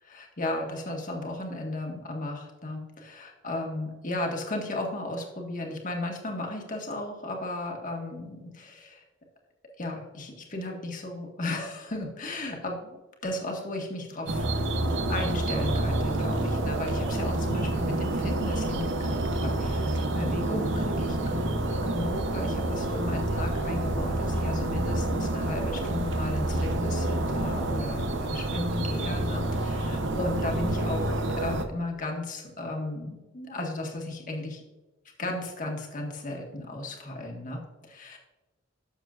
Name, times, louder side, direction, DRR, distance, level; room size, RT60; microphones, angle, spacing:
voice 1, 0.0-9.0 9.8-14.5 15.1-34.6 35.2-38.2, left 2 dB, 40° left, 1 dB, 1.7 m, -35 dB
sound 1, 14.3-31.6, right 1 dB, 65° right, 0.8 m, -28 dB
11.5 x 7.1 x 2.5 m, 1.1 s
head